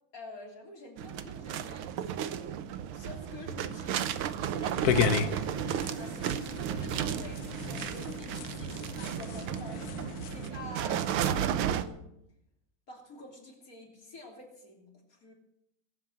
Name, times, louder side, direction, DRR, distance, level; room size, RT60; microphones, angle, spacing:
voice 1, 0.1-2.6 2.9-4.0 4.5-9.9 10.3-12.1 12.9-15.3, left 2 dB, 40° left, 1 dB, 3.4 m, -48 dB
sound 1, 1.0-11.8, right 9 dB, 90° right, 1.7 m, -33 dB
sound 2, 4.8-10.5, left 8 dB, 60° left, 1.1 m, -34 dB
18.0 x 8.6 x 7.7 m, 0.81 s
omnidirectional pair, 2.2 m